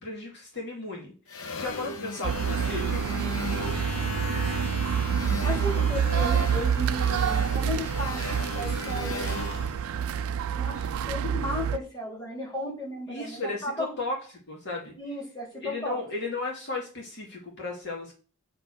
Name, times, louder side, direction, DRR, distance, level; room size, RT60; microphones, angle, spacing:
voice 1, 0.0-1.1 1.5-3.3 13.1-14.2 14.5-14.9 15.6-18.1, left 3 dB, 55° left, -2 dB, 2.6 m, -35 dB
sound 1, 1.3-10.8, left 2 dB, 75° left, 1.0 m, -36 dB
sound 2, 2.2-11.8, right 8 dB, 75° right, 0.4 m, -27 dB
voice 2, 5.4-9.3 10.5-14.0 15.0-16.0, left 1 dB, 20° left, -3 dB, 3.8 m, -35 dB
9.0 x 4.3 x 6.1 m, 0.38 s
head